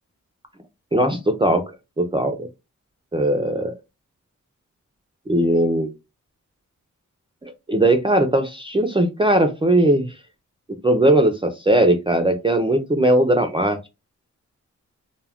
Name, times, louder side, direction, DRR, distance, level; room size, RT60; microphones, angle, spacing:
voice 1, 0.9-1.7 2.0-2.5 3.1-3.7 5.3-5.9 7.4-10.1 10.8-13.9, right 1 dB, 15° right, 5 dB, 0.4 m, -19 dB
2.2 x 2.1 x 3.4 m, 0.24 s
wide cardioid pair, 80°, 31 cm